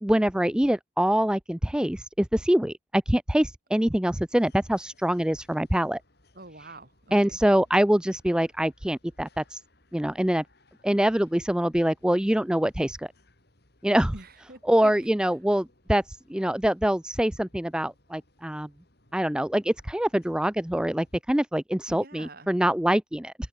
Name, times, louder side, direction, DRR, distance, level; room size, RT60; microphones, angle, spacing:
voice 1, 0.0-6.0 7.1-9.6 9.9-10.4 10.8-13.1 13.8-14.1 14.7-18.7 19.1-23.3, right 1 dB, 5° right, 0.4 m, -24 dB
sound 1, 4.3-21.2, left 1 dB, 50° left, 5.1 m, -63 dB
voice 2, 6.3-7.4 14.1-14.9 21.9-22.5, right 2 dB, 45° right, 7.8 m, -46 dB
open air
head